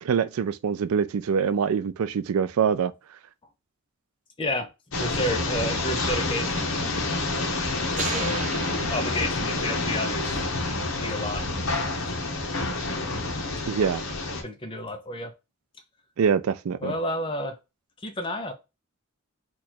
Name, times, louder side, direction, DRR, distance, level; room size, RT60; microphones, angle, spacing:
voice 1, 0.0-2.9 13.7-14.0 16.2-16.9, right 6 dB, 85° right, 0.4 m, -24 dB
voice 2, 4.4-7.1 8.0-8.4 8.9-10.4 10.7-11.4 14.4-15.3 16.8-17.6 18.0-18.5, left 1 dB, 25° left, 0.6 m, -31 dB
sound 1, 4.9-14.4, left 2 dB, 75° left, 0.9 m, -28 dB
sound 2, 8.0-9.8, right 3 dB, 35° right, 0.8 m, -35 dB
3.0 x 2.4 x 4.1 m
head